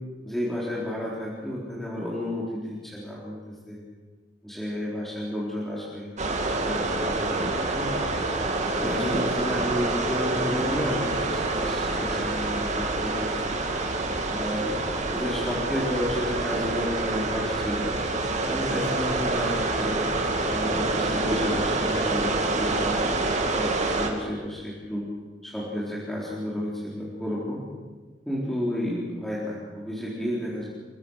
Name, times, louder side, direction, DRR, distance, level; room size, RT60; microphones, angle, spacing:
voice 1, 0.2-3.8 4.4-6.1 6.5-7.9 8.8-13.6 14.3-14.7 15.1-17.9 18.5-20.0 20.5-23.0 23.5-25.1 25.4-27.6 28.3-30.7, left 1 dB, ahead, -7 dB, 4.1 m, -31 dB
sound 1, 6.2-24.1, right 2 dB, 40° right, 2.7 m, -27 dB
28.5 x 17.0 x 6.6 m, 1.4 s
head